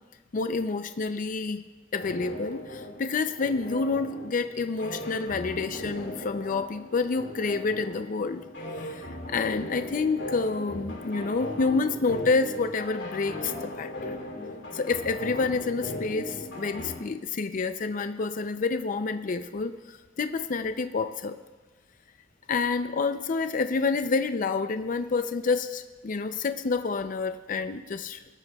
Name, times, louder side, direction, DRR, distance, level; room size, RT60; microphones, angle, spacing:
voice 1, 0.3-1.6 1.9-8.4 8.9-14.2 14.7-21.4 22.5-28.2, left 4 dB, 45° left, 9 dB, 0.5 m, -28 dB
sound 1, 2.0-17.0, left 1 dB, 75° left, 2.8 m, -38 dB
21.0 x 13.0 x 2.3 m, 1.3 s
head